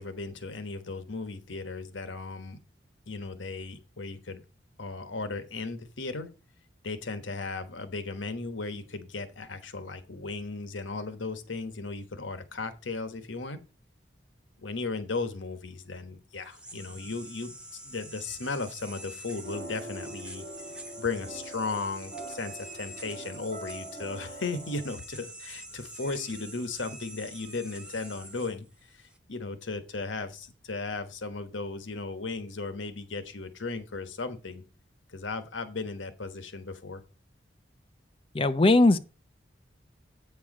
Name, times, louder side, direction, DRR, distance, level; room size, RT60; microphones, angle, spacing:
voice 1, 0.0-2.6 3.1-4.4 4.8-6.3 6.8-13.6 14.6-20.4 21.0-34.6 35.1-37.0, left 3 dB, 90° left, 1.2 m, -36 dB
sound 1, 16.3-29.2, right 1 dB, 5° right, 1.1 m, -46 dB
sound 2, 19.4-24.9, right 1 dB, 45° right, 4.1 m, -43 dB
voice 2, 38.3-39.0, left 2 dB, 30° left, 0.6 m, -19 dB
8.6 x 4.7 x 6.0 m
head